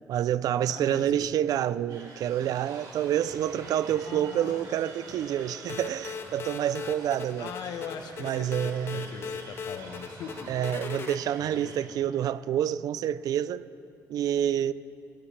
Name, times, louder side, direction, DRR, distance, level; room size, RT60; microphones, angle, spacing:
voice 1, 0.1-7.5 8.2-9.0 10.5-13.7 14.1-14.7, right 10 dB, 65° right, 0.4 m, -28 dB
voice 2, 0.7-1.3 3.9-4.8 7.4-10.7 11.4-11.7, left 7 dB, 80° left, 1.0 m, -41 dB
sound 1, 1.9-11.8, right 3 dB, 85° right, 3.2 m, -47 dB
sound 2, 3.2-3.5 3.8-4.6 4.8-5.8 6.1-7.5 7.9-8.1 8.4-8.7 9.2-9.9 10.1-10.5, right 3 dB, 45° right, 1.8 m, -53 dB
sound 3, 5.7-11.2, left 6 dB, 35° left, 0.4 m, -39 dB
20.5 x 18.0 x 3.3 m
cardioid pair, 165°, 7 cm